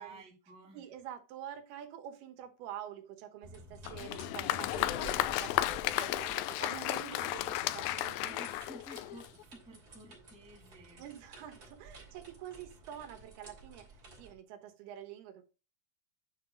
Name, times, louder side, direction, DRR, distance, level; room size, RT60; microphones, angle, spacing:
voice 1, 0.0-0.9 7.7-7.8 8.2-11.1 11.9-12.1, right 2 dB, 5° right, 0.4 m, -53 dB
voice 2, 0.7-8.4 11.0-15.4, right 10 dB, 85° right, 3.1 m, -47 dB
sound 1, 3.4-14.3, right 1 dB, 25° right, 2.9 m, -52 dB
Applause, 3.9-9.4, left 15 dB, 80° left, 2.2 m, -34 dB
9.4 x 4.9 x 5.1 m
omnidirectional pair, 4.4 m